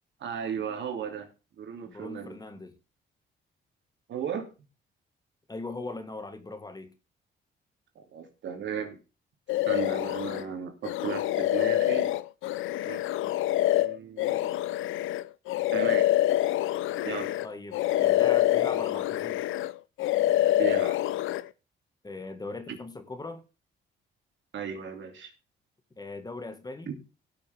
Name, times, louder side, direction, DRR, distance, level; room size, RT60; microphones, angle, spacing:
voice 1, 0.2-1.3 1.5-2.4 4.1-4.5 7.9-9.0 9.7-12.1 12.9-13.3 13.8-14.4 15.7-16.1 17.0-17.4 20.5-21.0 24.5-25.3, right 7 dB, 65° right, 2.8 m, -36 dB
voice 2, 1.8-2.8 5.5-6.9 17.4-19.4 22.0-23.4 26.0-26.9, left 2 dB, 20° left, 1.8 m, -40 dB
sound 1, 9.5-10.4 10.8-17.5 17.7-19.7 20.0-21.4, left 14 dB, 85° left, 0.6 m, -26 dB
17.5 x 6.7 x 3.5 m
cardioid pair, 90°, 20 cm